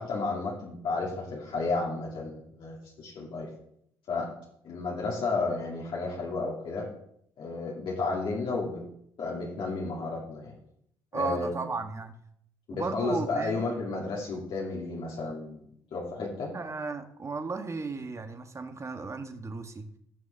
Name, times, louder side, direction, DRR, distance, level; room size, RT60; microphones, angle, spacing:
voice 1, 0.0-3.5 4.1-4.3 4.6-6.9 7.4-8.8 9.2-10.5 11.1-11.6 12.7-15.6 15.9-16.5, left 3 dB, 65° left, -5 dB, 2.8 m, -32 dB
voice 2, 11.1-12.1 12.7-13.7 16.5-19.9, right 4 dB, 30° right, 6 dB, 1.6 m, -35 dB
18.0 x 6.3 x 3.5 m, 0.71 s
supercardioid pair, 70°, 10 cm